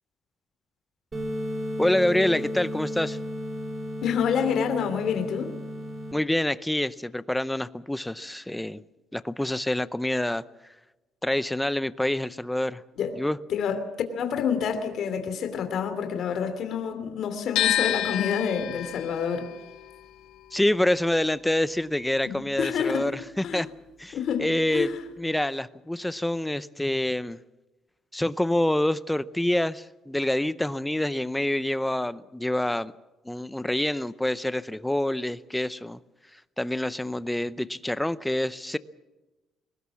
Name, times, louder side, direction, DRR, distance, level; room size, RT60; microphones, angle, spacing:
sound 1, 1.1-6.1, equal, 25° right, 2.9 m, -34 dB
voice 1, 1.8-3.2 6.1-8.8 9.1-10.4 11.2-12.8 13.1-13.4 20.5-23.7 24.0-24.9 25.2-27.4 28.1-32.9 33.2-36.0 36.6-38.8, left 1 dB, 5° left, 0.7 m, -26 dB
voice 2, 4.0-5.5 13.0-13.1 13.5-19.5 22.3-23.1 23.4-23.6 24.1-24.5 24.7-25.0, left 7 dB, 55° left, 2.9 m, -28 dB
sound 2, 17.6-23.6 23.9-25.2, left 12 dB, 75° left, 5.8 m, -31 dB
22.5 x 19.5 x 7.2 m
cardioid pair, 135°, 0 cm